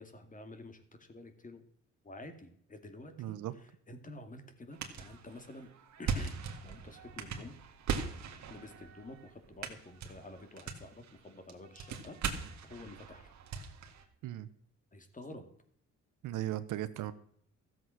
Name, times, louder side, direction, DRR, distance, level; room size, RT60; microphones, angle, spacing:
voice 1, 0.0-1.6 2.0-3.4 3.9-5.7 6.0-7.6 8.5-13.3 14.9-15.5, left 2 dB, 25° left, 7 dB, 2.3 m, -50 dB
voice 2, 3.2-3.5 14.2-14.5 16.2-17.1, right 13 dB, 85° right, 13 dB, 0.9 m, -37 dB
sound 1, 4.7-14.0, right 6 dB, 70° right, 1.9 m, -40 dB
14.0 x 7.7 x 6.3 m, 0.66 s
cardioid pair, 90°, 30 cm